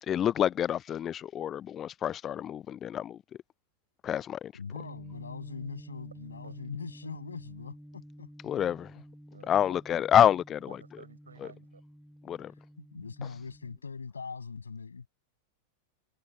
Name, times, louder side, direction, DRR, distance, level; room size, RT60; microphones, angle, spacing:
voice 1, 0.0-3.2 4.0-4.5 8.4-9.0 9.5-10.7 12.3-12.5 13.2-13.3, left 10 dB, 25° left, 0.3 m, -27 dB
voice 2, 4.5-8.3 8.7-8.8 12.8-15.1, left 5 dB, 75° left, 7.9 m, -41 dB
sound 1, 4.7-13.8, equal, ahead, 2.2 m, -50 dB
voice 3, 9.3-9.8 10.7-11.8, right 5 dB, 75° right, 7.4 m, -52 dB
figure-of-eight pair, 90°, 0 cm